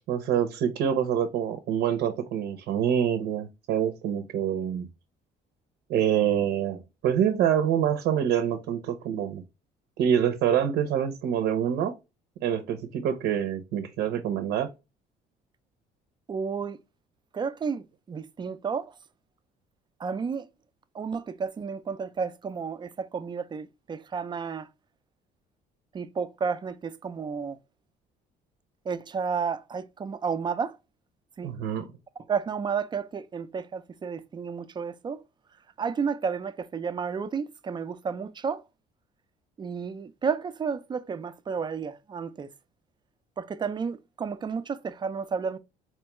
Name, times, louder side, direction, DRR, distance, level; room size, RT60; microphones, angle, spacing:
voice 1, 0.1-4.9 5.9-9.4 10.0-11.9 12.4-14.7 31.4-31.9, right 9 dB, 80° right, 0.6 m, -26 dB
voice 2, 16.3-16.8 17.3-18.9 20.0-20.5 20.9-24.7 25.9-27.6 28.9-30.8 31.4-31.5 32.3-35.2 35.8-38.6 39.6-42.5 43.4-45.6, right 6 dB, 25° right, 0.4 m, -32 dB
4.4 x 2.2 x 2.9 m
cardioid pair, 110°, 17 cm